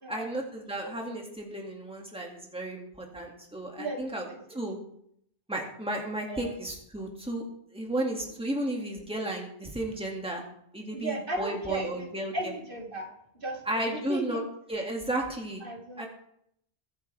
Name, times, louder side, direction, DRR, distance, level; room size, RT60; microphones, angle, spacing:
voice 1, 0.1-4.2 4.5-4.8 5.5-7.4 7.7-10.4 10.7-12.3 13.7-14.4 14.7-15.6 16.0-16.1, right 1 dB, 5° right, 0 dB, 2.3 m, -33 dB
voice 2, 3.8-4.6 6.3-6.5 10.9-14.4 15.6-16.1, right 2 dB, 60° right, 0 dB, 2.3 m, -36 dB
23.0 x 8.8 x 3.5 m, 0.72 s
omnidirectional pair, 1.0 m